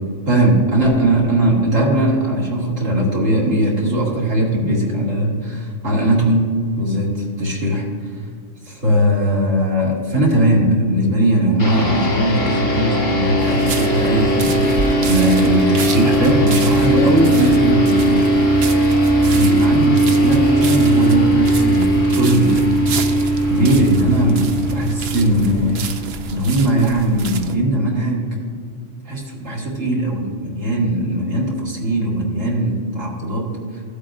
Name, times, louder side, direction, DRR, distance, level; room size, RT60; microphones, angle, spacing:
voice 1, 0.3-6.5 6.8-7.9 8.7-22.6 23.5-24.4 24.7-25.9 26.3-28.3 29.1-33.8, right 1 dB, 85° right, -4 dB, 2.6 m, -19 dB
sound 1, 11.6-26.4, right 1 dB, 90° left, 2.8 m, -18 dB
sound 2, 13.4-27.5, right 5 dB, 60° right, 0.8 m, -31 dB
15.5 x 8.2 x 2.6 m, 2.2 s
omnidirectional pair, 1.3 m